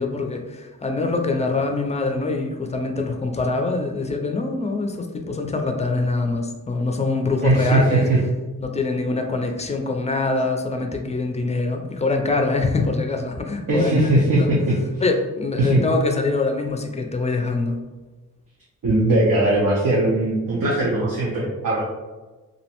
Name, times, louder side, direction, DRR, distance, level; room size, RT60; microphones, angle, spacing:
voice 1, 0.0-8.1 8.6-14.5 15.0-17.8, left 3 dB, 20° left, 3 dB, 0.3 m, -24 dB
voice 2, 7.4-8.2 13.7-14.8 15.6-15.8 18.8-21.8, right 1 dB, 75° right, -5 dB, 0.6 m, -19 dB
2.5 x 2.1 x 2.8 m, 1.2 s
wide cardioid pair, 75°, 34 cm